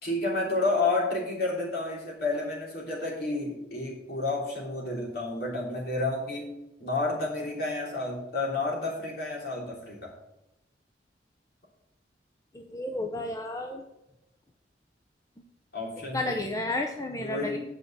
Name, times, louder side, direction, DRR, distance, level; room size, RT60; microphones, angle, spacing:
voice 1, 0.0-6.5 6.8-10.1 15.7-16.3 17.2-17.6, left 2 dB, 60° left, -3 dB, 3.1 m, -30 dB
voice 2, 12.5-13.8 16.1-17.6, left 2 dB, 20° left, 3 dB, 0.6 m, -32 dB
8.7 x 5.1 x 7.0 m, 0.89 s
head